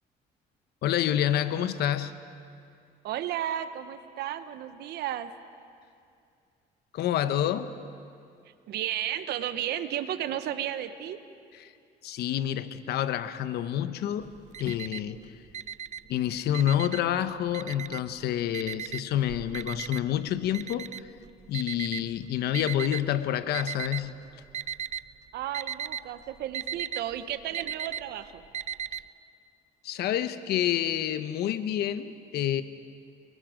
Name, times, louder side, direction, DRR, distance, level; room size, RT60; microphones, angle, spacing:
voice 1, 0.8-2.2 6.9-7.7 11.5-11.7 12.0-14.3 14.6-15.3 16.1-20.9 21.5-24.2 29.8-32.6, left 11 dB, 75° left, 11 dB, 1.1 m, -28 dB
voice 2, 3.0-5.3 8.7-11.2 25.3-28.4, right 11 dB, 75° right, 11 dB, 1.2 m, -33 dB
Alarm, 14.2-15.2 15.5-17.2 17.5-18.2 18.5-23.0 23.5-24.2 24.4-25.1 25.3-29.0, right 9 dB, 45° right, 0.5 m, -36 dB
29.5 x 23.0 x 5.2 m, 2.4 s
cardioid pair, 110°, 17 cm